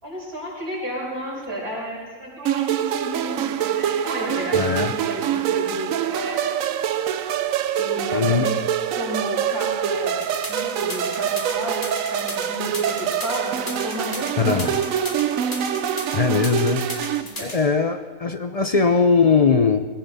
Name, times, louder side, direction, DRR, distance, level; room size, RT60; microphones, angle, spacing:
voice 1, 0.0-6.4 7.8-8.5 8.9-10.2 10.5-14.6 15.1-15.2 17.4-17.6, equal, 85° right, -6 dB, 6.1 m, -32 dB
sound 1, 2.5-17.2, right 9 dB, 70° right, 1.0 m, -25 dB
voice 2, 4.5-4.9 8.1-8.5 14.4-14.7 16.1-16.8 17.4-19.9, left 5 dB, 40° left, 8 dB, 0.5 m, -20 dB
sound 2, 10.2-17.5, left 1 dB, 25° left, 2.6 m, -34 dB
19.5 x 16.0 x 4.1 m, 1.4 s
omnidirectional pair, 1.6 m